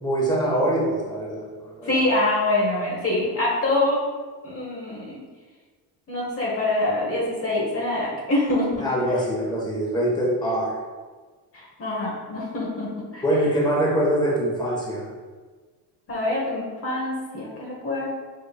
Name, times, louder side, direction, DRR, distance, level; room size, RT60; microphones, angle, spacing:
voice 1, 0.0-1.9 8.8-10.7 13.2-15.0, right 1 dB, 10° left, -5 dB, 1.2 m, -23 dB
voice 2, 1.8-4.0 4.4-5.2 6.1-8.7 11.5-13.2 16.1-18.1, left 2 dB, 35° left, -4 dB, 1.2 m, -25 dB
5.2 x 3.8 x 2.4 m, 1.4 s
cardioid pair, 110°, 40 cm